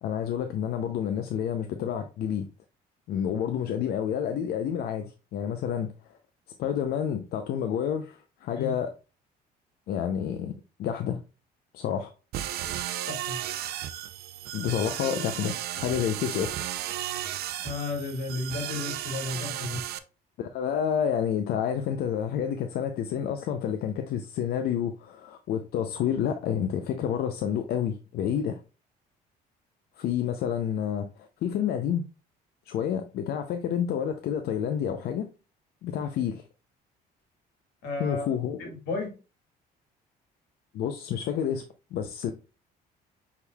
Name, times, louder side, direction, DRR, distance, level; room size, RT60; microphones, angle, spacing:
voice 1, 0.0-2.5 3.1-5.9 6.6-8.9 9.9-10.5 10.8-11.2 11.7-12.1 14.5-16.7 20.4-28.6 30.0-32.0 32.7-35.3 35.8-36.4 38.0-38.6 40.7-41.6 41.9-42.3, left 9 dB, 65° left, 0.5 m, -29 dB
sound 1, 12.3-20.0, right 12 dB, 70° right, 0.5 m, -34 dB
voice 2, 13.1-13.4 17.6-19.8 37.8-38.3 38.6-39.1, left 3 dB, 85° left, 1.8 m, -33 dB
6.2 x 3.6 x 2.2 m
cardioid pair, 110°, 17 cm